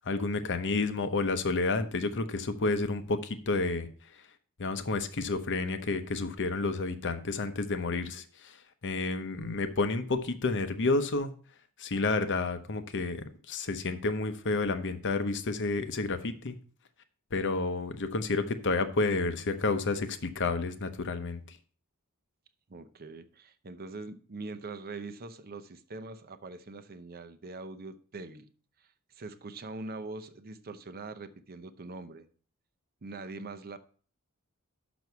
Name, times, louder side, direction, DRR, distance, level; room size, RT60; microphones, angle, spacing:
voice 1, 0.1-3.9 4.6-8.5 8.8-11.3 11.8-16.6 17.3-21.4, left 3 dB, 55° left, 10 dB, 0.9 m, -30 dB
voice 2, 22.7-28.5 29.1-32.3 33.0-33.8, right 3 dB, 45° right, 10 dB, 0.7 m, -43 dB
6.2 x 6.1 x 6.8 m, 0.42 s
head